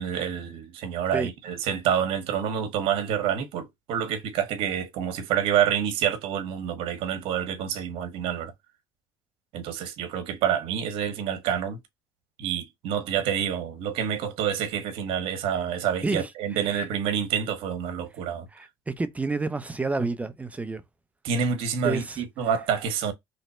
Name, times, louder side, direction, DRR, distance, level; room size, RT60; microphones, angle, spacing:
voice 1, 0.0-8.5 9.5-11.8 12.4-18.5 21.2-23.1, right 8 dB, 70° right, 0.9 m, -27 dB
voice 2, 18.5-20.8 21.8-22.2, right 3 dB, 15° right, 0.5 m, -29 dB
3.1 x 2.1 x 4.2 m
supercardioid pair, 90°, 10 cm